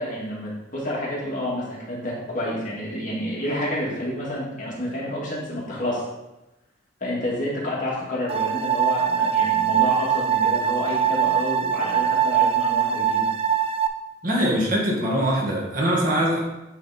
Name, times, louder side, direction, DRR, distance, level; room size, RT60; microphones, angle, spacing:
voice 1, 0.0-6.0 7.0-13.3, left 1 dB, 45° left, -6 dB, 2.3 m, -29 dB
sound 1, 8.3-13.9, right 8 dB, 30° right, 0.4 m, -22 dB
voice 2, 14.2-16.4, equal, 45° right, -4 dB, 1.8 m, -22 dB
8.8 x 3.9 x 4.3 m, 0.97 s
head